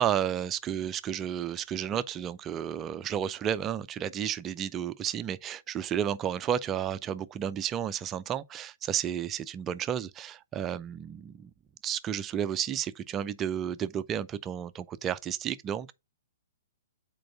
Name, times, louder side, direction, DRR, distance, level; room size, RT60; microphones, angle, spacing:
voice 1, 0.0-11.5 11.8-15.9, right 9 dB, 20° right, 0.5 m, -32 dB
7.6 x 4.5 x 4.1 m
figure-of-eight pair, 115°, 0 cm